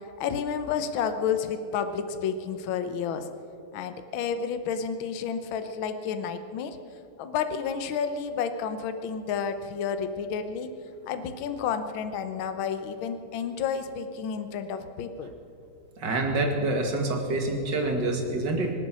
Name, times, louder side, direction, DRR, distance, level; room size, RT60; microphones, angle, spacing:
voice 1, 0.2-3.2 3.7-6.8 7.2-10.7 11.1-15.3, left 7 dB, 70° left, 9 dB, 1.6 m, -30 dB
voice 2, 16.0-18.7, right 2 dB, 55° right, 2 dB, 2.5 m, -27 dB
25.5 x 8.6 x 6.2 m, 2.6 s
omnidirectional pair, 2.4 m